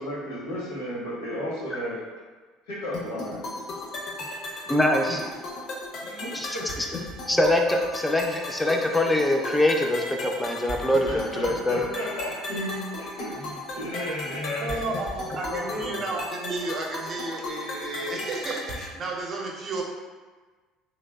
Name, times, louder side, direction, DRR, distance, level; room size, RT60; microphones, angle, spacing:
voice 1, 0.0-2.0 2.7-3.6 4.2-4.4 5.1-5.2 6.0-6.7 11.1-14.9 15.5-16.0, left 1 dB, 85° left, -6 dB, 0.9 m, -34 dB
sound 1, 2.9-18.9, left 2 dB, 60° left, 0.6 m, -36 dB
voice 2, 4.7-5.2 6.3-6.6 7.3-11.8, left 1 dB, 10° left, 2 dB, 0.4 m, -23 dB
voice 3, 14.6-19.8, right 2 dB, 45° right, 0 dB, 0.5 m, -32 dB
3.1 x 2.0 x 2.2 m, 1.4 s
hypercardioid pair, 70°, 0 cm